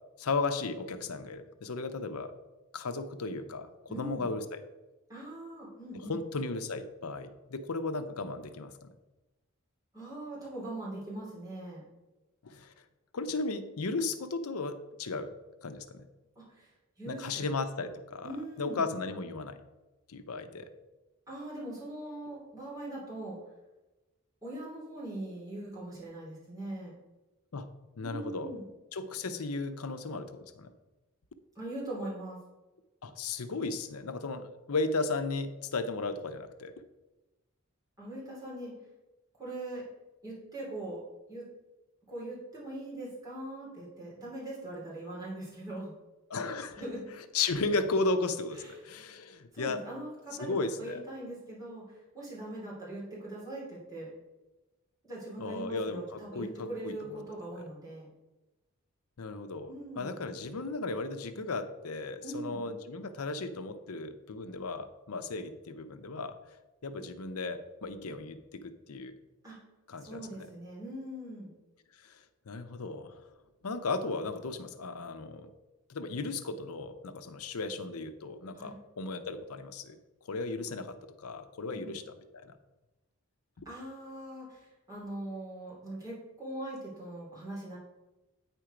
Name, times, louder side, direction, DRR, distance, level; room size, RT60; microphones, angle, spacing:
voice 1, 0.2-2.3 2.7-4.6 5.9-8.9 12.4-12.7 13.1-15.3 15.6-16.1 17.1-18.3 18.6-19.6 20.1-20.7 27.5-27.7 28.0-28.5 28.9-30.7 33.0-36.8 46.3-46.8 47.3-49.8 50.4-51.0 55.4-57.2 59.2-66.3 66.8-69.1 69.9-70.5 72.0-72.1 72.5-73.3 73.6-75.5 75.9-80.0 80.3-81.0 81.2-82.0 82.3-82.5 83.6-83.7, left 3 dB, 85° left, 10 dB, 0.7 m, -35 dB
voice 2, 3.9-4.3 5.1-6.2 9.9-11.8 16.3-16.7 17.0-17.4 18.2-18.8 21.3-23.4 24.4-26.9 28.0-28.7 31.5-32.4 38.0-38.7 39.4-39.8 40.2-41.0 41.3-41.5 42.1-45.9 46.8-47.1 48.5-48.8 49.5-54.1 55.0-58.1 59.7-60.1 62.2-62.6 69.4-69.6 70.0-71.5 78.5-78.7 81.7-81.9 83.6-87.8, right 1 dB, 15° right, -7 dB, 3.1 m, -41 dB
9.1 x 4.5 x 5.0 m, 1.1 s
head